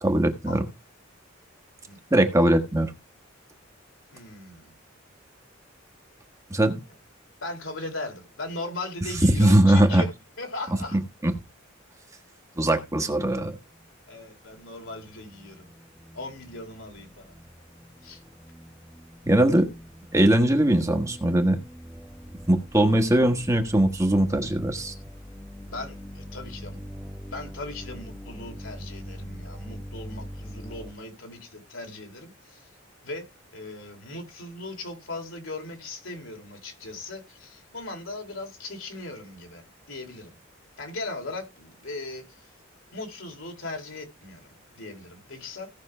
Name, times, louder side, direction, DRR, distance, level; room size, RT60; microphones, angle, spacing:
voice 1, 0.0-0.6 2.1-2.9 6.5-6.8 9.2-10.0 10.9-11.3 12.6-13.5 19.3-19.7 20.1-21.6 22.5-24.9, right 1 dB, 15° right, 1.4 m, -20 dB
voice 2, 4.1-4.7 7.4-10.1 10.4-11.0 14.1-15.7 16.1-17.3 18.0-18.2 25.7-26.8 27.3-32.7 33.0-33.3 33.5-39.6 39.9-40.4 40.8-42.5 42.9-45.7, left 2 dB, 70° left, 3.1 m, -38 dB
sound 1, 14.5-30.9, equal, ahead, 0.9 m, -43 dB
17.0 x 6.2 x 3.2 m
head